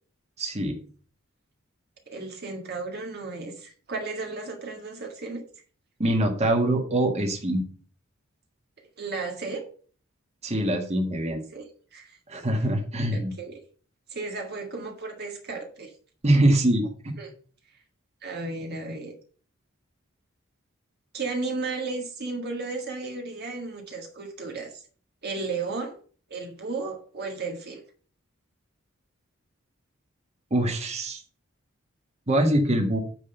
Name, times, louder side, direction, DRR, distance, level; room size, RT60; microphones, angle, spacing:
voice 1, 0.4-0.8 6.0-7.6 10.4-11.4 12.3-13.3 16.2-17.1 30.5-31.2 32.3-33.0, right 1 dB, 30° right, 2 dB, 1.7 m, -23 dB
voice 2, 2.1-5.4 9.0-9.6 11.5-11.6 11.9-12.2 13.1-13.6 14.1-15.9 17.2-17.3 18.2-19.1 21.1-24.8 25.2-26.0 26.3-27.8, right 3 dB, 50° right, 2 dB, 1.7 m, -34 dB
9.5 x 3.8 x 6.8 m, 0.42 s
head